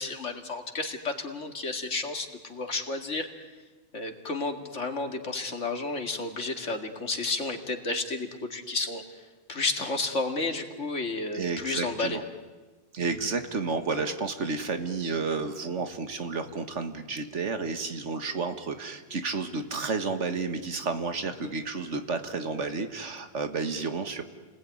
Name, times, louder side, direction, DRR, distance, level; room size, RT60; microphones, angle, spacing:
voice 1, 0.0-3.3 3.9-9.0 9.5-12.2, left 3 dB, 90° left, 5 dB, 2.5 m, -31 dB
voice 2, 11.3-12.2 12.9-24.2, right 4 dB, 85° right, 8 dB, 2.0 m, -31 dB
29.5 x 20.5 x 9.6 m, 1.3 s
omnidirectional pair, 1.2 m